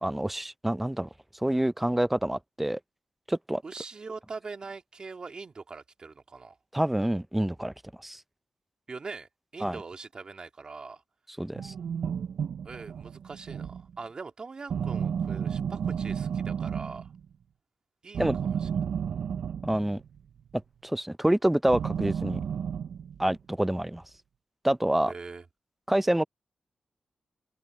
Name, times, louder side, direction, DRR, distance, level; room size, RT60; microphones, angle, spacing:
voice 1, 0.0-1.1 1.4-2.8 3.3-3.6 6.7-7.7 8.0-8.2 9.6-9.8 11.4-11.7 18.2-18.4 19.6-20.0 20.8-22.4 23.2-24.0 24.6-25.1 25.9-26.2, right 1 dB, 10° right, 0.4 m, -27 dB
voice 2, 3.6-6.6 8.9-11.0 12.6-17.1 18.0-18.7 25.1-25.4, right 4 dB, 45° right, 2.2 m, -42 dB
sound 1, 11.6-14.0 14.7-17.3 18.1-20.2 21.7-23.4, right 7 dB, 85° right, 0.4 m, -32 dB
wide cardioid pair, 105°, 2 cm